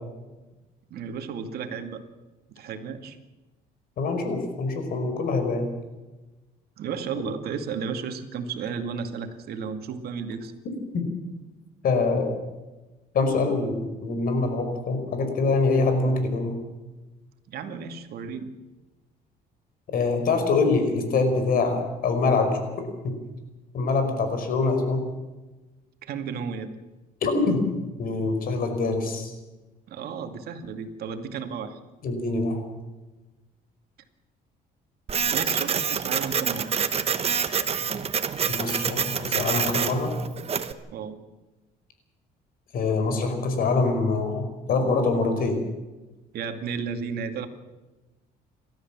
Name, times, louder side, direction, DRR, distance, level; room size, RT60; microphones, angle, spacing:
voice 1, 0.9-2.0 2.5-3.2 6.8-10.5 17.5-18.5 26.0-26.7 29.9-31.8 35.3-36.7 40.9-41.2 46.3-47.5, right 6 dB, 65° right, 7 dB, 2.3 m, -33 dB
voice 2, 4.0-5.7 10.9-11.1 11.8-12.3 13.1-16.5 19.9-22.6 23.7-25.0 27.2-27.6 28.0-29.3 32.0-32.6 38.5-40.1 42.7-45.6, left 3 dB, 60° left, 6 dB, 5.2 m, -24 dB
Printer, 35.1-40.7, right 7 dB, 35° right, 1.3 m, -27 dB
29.0 x 13.0 x 7.5 m, 1.1 s
cardioid pair, 110°, 17 cm